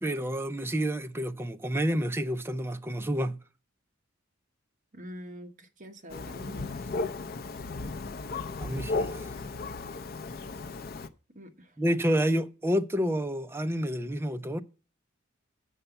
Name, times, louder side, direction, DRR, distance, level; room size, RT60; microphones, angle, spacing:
voice 1, 0.0-3.4 8.6-9.2 11.8-14.6, equal, 10° right, 0.5 m, -29 dB
voice 2, 4.9-7.1 11.3-11.8, equal, 40° right, 1.1 m, -46 dB
Thunder, 6.1-11.1, left 3 dB, 50° left, 0.6 m, -35 dB
7.9 x 5.5 x 7.0 m
head